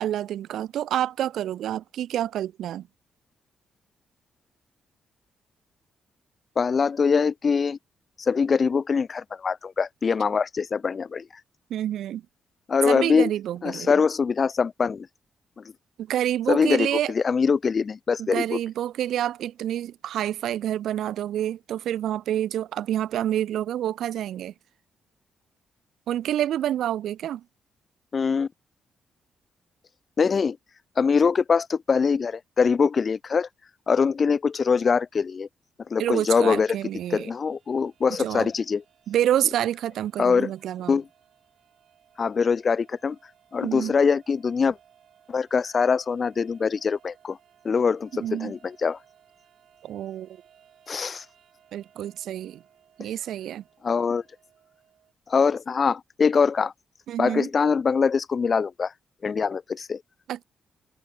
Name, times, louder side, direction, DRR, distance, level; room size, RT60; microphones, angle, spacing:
voice 1, 0.0-2.9 11.7-12.2 12.9-13.9 16.0-17.1 18.2-24.5 26.1-27.4 36.0-37.3 38.2-38.5 39.1-41.0 43.6-43.9 48.1-48.5 49.8-50.3 51.7-52.6 53.0-53.6 57.1-57.5 60.3-60.4, right 11 dB, 80° right, 0.4 m, -28 dB
voice 2, 6.6-7.8 8.2-11.3 12.7-13.3 13.6-15.1 15.6-15.7 16.5-18.6 28.1-28.5 30.2-30.6 31.0-33.5 33.9-35.5 35.9-36.8 37.1-38.8 40.2-40.5 40.9-41.1 42.2-43.2 43.5-44.8 45.3-47.4 47.6-49.0 50.9-51.2 53.8-54.2 55.3-56.7 57.2-58.9 59.2-60.0, left 5 dB, 40° left, 1.0 m, -23 dB
sound 1, 36.2-55.1, right 9 dB, 65° right, 8.0 m, -60 dB
cardioid pair, 125°, 0 cm